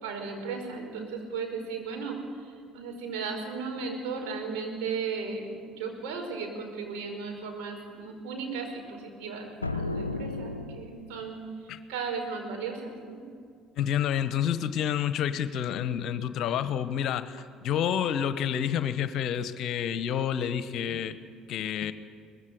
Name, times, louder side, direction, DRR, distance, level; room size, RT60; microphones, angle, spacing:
voice 1, 0.0-2.2 2.7-11.4 11.9-13.2, right 5 dB, 65° right, 2 dB, 5.2 m, -35 dB
sound 1, 9.6-11.4, left 2 dB, 90° left, 0.5 m, -34 dB
voice 2, 13.8-21.2 21.5-21.9, left 9 dB, 55° left, 13 dB, 1.1 m, -29 dB
23.5 x 20.5 x 8.2 m, 2.1 s
figure-of-eight pair, 55°, 0 cm